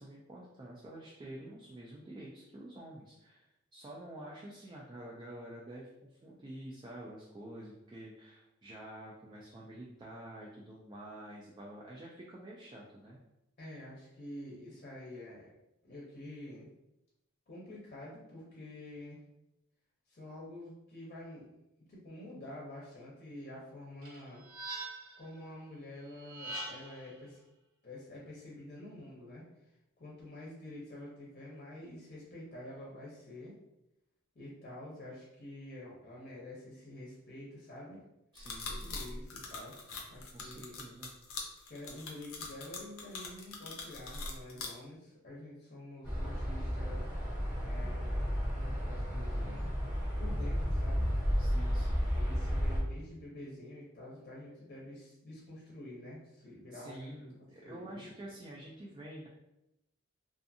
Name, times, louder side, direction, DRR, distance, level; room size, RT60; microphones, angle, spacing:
voice 1, 0.0-13.2 38.3-39.1 40.3-41.1 51.4-52.2 56.7-59.3, right 1 dB, 20° right, -4 dB, 0.3 m, -48 dB
voice 2, 13.6-15.5 15.8-16.7 17.5-19.2 20.1-21.5 21.8-24.4 25.2-27.4 27.8-29.4 30.0-33.5 34.3-38.0 38.6-40.8 41.7-47.0 47.6-49.6 50.2-51.1 52.1-57.3 57.6-58.3, left 1 dB, 40° left, -6 dB, 0.7 m, -48 dB
sound 1, 24.0-25.2 26.2-27.1, right 2 dB, 90° right, 0.6 m, -43 dB
sound 2, 38.4-44.7, left 4 dB, 80° left, 0.5 m, -42 dB
sound 3, 46.0-52.8, equal, 5° right, 0.7 m, -32 dB
2.5 x 2.4 x 2.6 m, 0.89 s
head